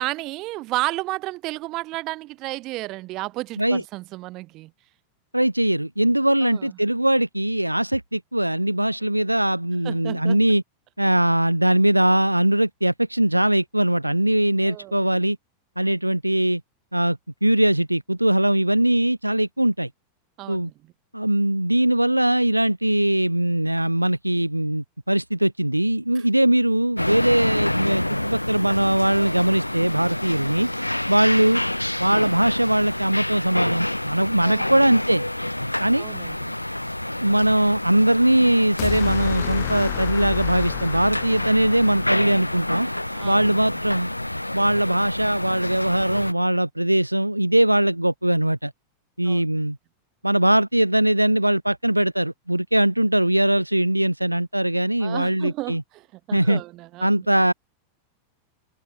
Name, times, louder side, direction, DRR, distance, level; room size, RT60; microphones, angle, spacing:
voice 1, 0.0-4.7 6.4-6.8 9.8-10.4 14.6-15.0 20.4-20.9 26.2-26.3 34.4-34.8 36.0-36.4 43.1-43.6 49.2-49.4 55.0-57.1, right 19 dB, 40° right, 6.9 m, -32 dB
voice 2, 5.3-10.6 11.0-15.4 15.8-16.6 16.9-19.9 20.5-20.7 21.1-30.7 31.1-31.6 32.0-35.2 35.8-36.1 37.2-42.9 43.2-44.1 44.5-48.7 49.2-49.8 50.2-55.8 56.3-56.6 57.0-57.5, right 1 dB, 85° right, 2.1 m, -21 dB
sound 1, 27.0-46.3, left 1 dB, 85° left, 3.8 m, -28 dB
sound 2, 38.8-43.1, left 27 dB, 45° left, 1.0 m, -31 dB
figure-of-eight pair, 90°, 0 cm